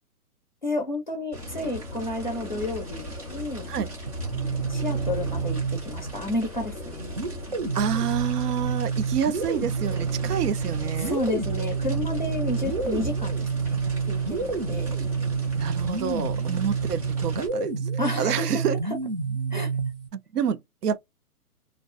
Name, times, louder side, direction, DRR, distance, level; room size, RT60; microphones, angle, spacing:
voice 1, 0.6-3.7 4.7-7.1 11.0-13.8 14.1-14.9 18.0-19.0 19.5-19.7, left 2 dB, 35° left, 0.4 m, -31 dB
Fire, 1.3-17.5, equal, 25° right, 0.9 m, -37 dB
sound 1, 4.1-6.2 7.2-20.1, right 5 dB, 40° right, 0.5 m, -28 dB
voice 2, 7.7-11.1 15.6-17.7 18.2-18.8 20.1-21.0, right 8 dB, 80° right, 0.6 m, -28 dB
2.5 x 2.2 x 2.4 m
hypercardioid pair, 170°, 45 cm